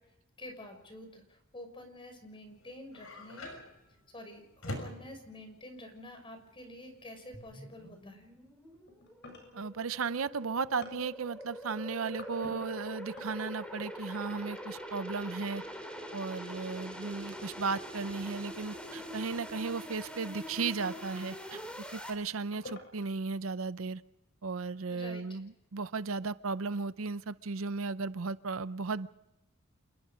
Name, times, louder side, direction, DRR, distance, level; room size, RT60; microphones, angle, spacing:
voice 1, 0.4-3.5 4.1-8.3 24.9-25.4, left 1 dB, 25° left, 6 dB, 6.1 m, -48 dB
sound 1, 2.5-8.0, left 1 dB, 90° left, 6.4 m, -45 dB
sound 2, 5.0-5.1 7.1-7.6 7.9-8.2 8.7-13.4 14.4-15.0 17.0-17.1 19.3-19.4 20.2-21.7 22.4-23.1, left 3 dB, 60° left, 7.6 m, -52 dB
sound 3, 7.3-22.1, equal, 5° left, 4.0 m, -44 dB
voice 2, 9.5-15.6 16.1-21.6 21.9-24.0 24.4-29.1, right 4 dB, 80° right, 15 dB, 0.7 m, -35 dB
28.0 x 21.0 x 5.2 m, 0.96 s
head